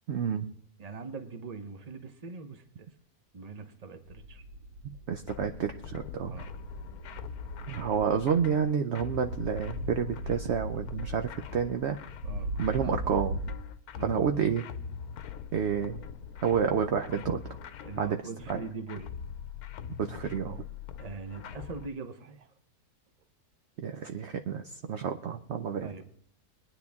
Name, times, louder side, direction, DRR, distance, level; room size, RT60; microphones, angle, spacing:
voice 1, 0.1-0.5 4.8-6.4 7.7-12.0 12.6-13.4 14.0-14.6 15.5-16.0 16.4-17.4 18.0-18.6 20.0-20.6 23.8-25.9, right 7 dB, 60° right, 7 dB, 0.8 m, -30 dB
voice 2, 0.8-2.9 3.3-4.4 6.3-6.5 12.2-12.5 13.9-14.3 17.8-19.1 21.0-22.5 25.8-26.0, right 4 dB, 30° right, 8 dB, 0.9 m, -41 dB
sound 1, 4.1-5.2 6.2-8.3 9.3-11.3 12.2-13.5, right 1 dB, 85° right, 2.3 m, -38 dB
sound 2, 5.3-21.9, left 8 dB, 75° left, 1.2 m, -43 dB
21.5 x 9.8 x 3.6 m, 0.65 s
omnidirectional pair, 1.6 m